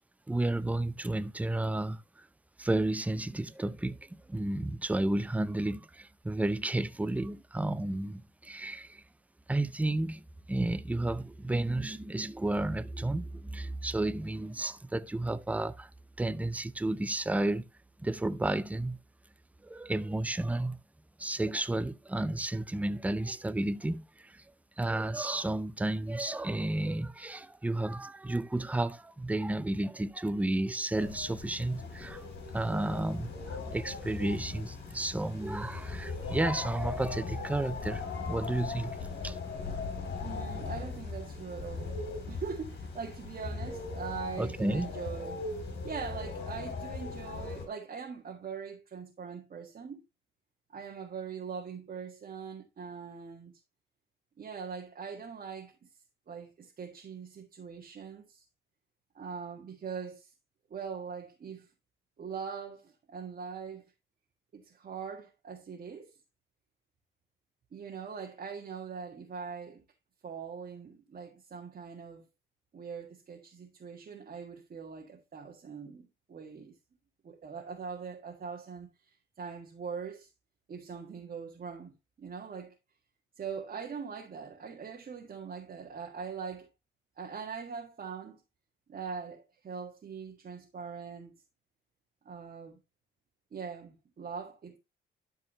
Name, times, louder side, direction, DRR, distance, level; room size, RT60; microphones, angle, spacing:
voice 1, 0.3-2.3 2.6-9.0 9.5-15.9 16.2-17.6 18.0-19.0 19.6-20.8 21.2-24.4 24.8-32.3 32.5-39.0 39.2-39.4 44.4-44.9, right 2 dB, 5° right, 0.6 m, -32 dB
sound 1, 30.9-47.7, left 4 dB, 60° left, 3.7 m, -39 dB
voice 2, 40.2-41.9 42.3-45.4 45.8-50.0 50.7-53.5 54.4-55.9 56.3-58.4 59.2-60.3 60.7-61.7 62.2-63.9 64.5-66.1 67.7-69.8 70.2-72.3 72.7-76.8 77.2-80.3 80.7-82.8 83.4-86.7 87.2-88.4 88.9-91.3 92.3-92.8 93.5-94.8, right 6 dB, 45° right, 1.7 m, -42 dB
12.0 x 4.7 x 3.0 m
cardioid pair, 90°, 20 cm